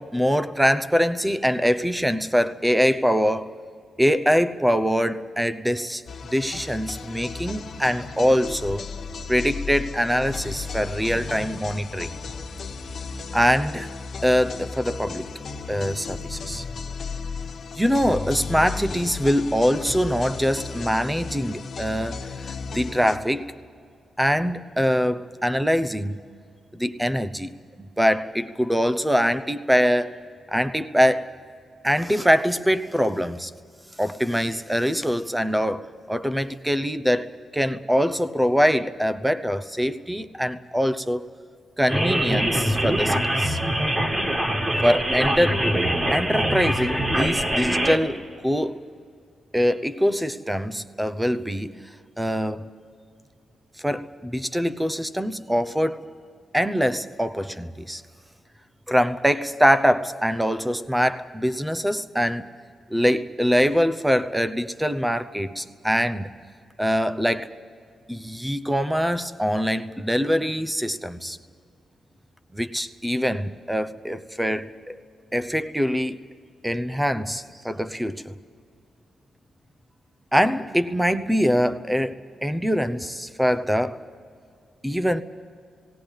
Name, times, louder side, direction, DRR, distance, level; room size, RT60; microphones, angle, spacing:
voice 1, 0.0-3.5 4.0-6.0 6.3-8.9 9.3-12.1 13.3-13.9 14.2-15.3 15.7-16.6 17.8-23.5 24.2-26.2 26.7-30.2 30.5-31.3 31.8-33.5 34.0-41.3 41.8-43.6 44.8-45.7 46.1-48.8 49.5-51.8 52.2-52.7 53.8-56.1 56.5-58.0 58.9-62.5 62.9-66.3 66.8-67.6 68.1-71.4 72.5-75.0 75.3-76.2 76.6-78.4 80.3-84.0 84.8-85.2, equal, 5° right, 0.8 m, -23 dB
sound 1, 6.1-23.2, left 4 dB, 60° left, 1.5 m, -34 dB
sound 2, 41.9-48.0, right 1 dB, 25° right, 2.2 m, -23 dB
18.0 x 17.5 x 9.1 m
cardioid pair, 95°, 0 cm